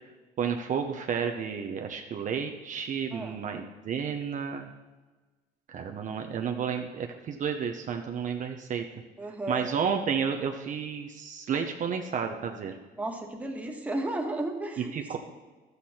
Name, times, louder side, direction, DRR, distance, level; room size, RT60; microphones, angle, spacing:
voice 1, 0.4-4.7 5.7-8.9 9.5-12.8 14.8-15.2, right 7 dB, 50° right, 3 dB, 0.8 m, -31 dB
voice 2, 9.2-9.7 13.0-15.2, right 1 dB, 10° right, 1 dB, 1.5 m, -34 dB
12.0 x 8.1 x 4.3 m, 1.3 s
cardioid pair, 110°, 17 cm